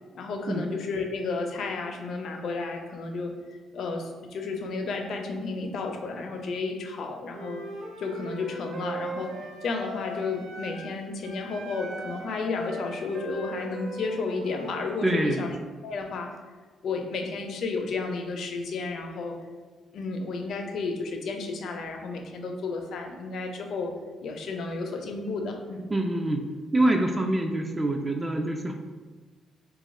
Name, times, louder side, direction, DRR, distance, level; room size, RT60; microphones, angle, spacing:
voice 1, 0.1-3.3 3.7-7.6 8.0-9.3 9.6-15.5 15.8-16.3 16.8-19.4 19.9-23.9 24.2-25.9, left 3 dB, 65° left, 3 dB, 0.5 m, -32 dB
Wind instrument woodwind instrument, 7.3-10.9 11.2-15.1, right 1 dB, 80° right, 0.5 m, -39 dB
voice 2, 15.0-15.5 25.9-26.4 26.7-28.7, right 1 dB, 20° right, 3 dB, 0.3 m, -25 dB
2.8 x 2.3 x 4.1 m, 1.3 s
cardioid pair, 90°, 0 cm